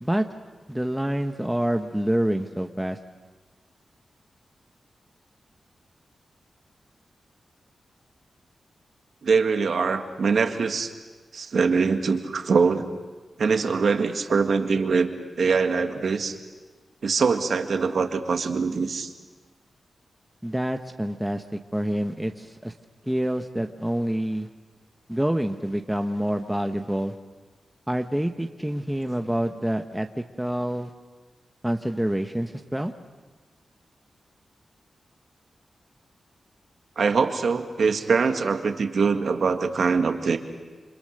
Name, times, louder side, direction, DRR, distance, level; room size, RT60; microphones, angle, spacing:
voice 1, 0.7-3.0 20.4-22.7 23.1-24.5 25.1-27.1 27.9-30.9 31.6-32.9, right 1 dB, 5° right, 5 dB, 1.0 m, -27 dB
voice 2, 9.2-10.9 11.3-12.9 13.4-15.1 15.4-16.4 17.0-19.1 37.0-40.4, right 5 dB, 70° right, 6 dB, 1.9 m, -23 dB
28.0 x 25.5 x 6.6 m, 1.3 s
cardioid pair, 75°, 0 cm